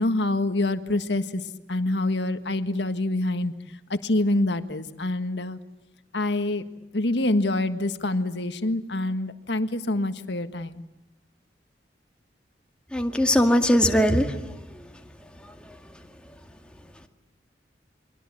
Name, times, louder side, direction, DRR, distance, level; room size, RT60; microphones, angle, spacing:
voice 1, 0.0-1.4 1.7-3.5 3.9-5.6 6.1-6.6 6.9-10.8, left 2 dB, 80° left, 10 dB, 1.6 m, -26 dB
voice 2, 12.9-14.6, equal, 5° left, 4 dB, 2.1 m, -21 dB
29.5 x 23.0 x 8.6 m, 0.94 s
head